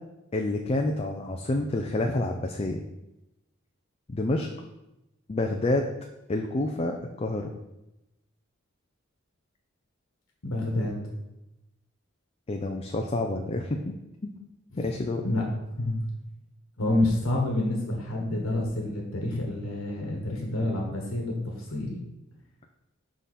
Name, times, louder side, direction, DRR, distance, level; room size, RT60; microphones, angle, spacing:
voice 1, 0.3-2.8 4.1-4.5 5.3-5.9 6.3-7.5 12.5-13.9 14.2-14.3 14.8-15.2, left 2 dB, 30° left, 3 dB, 0.5 m, -28 dB
voice 2, 10.4-10.9 14.7-14.9 15.2-15.4 15.8-16.0 16.8-22.0, left 1 dB, 85° left, -1 dB, 1.4 m, -28 dB
11.0 x 3.9 x 4.2 m, 0.94 s
head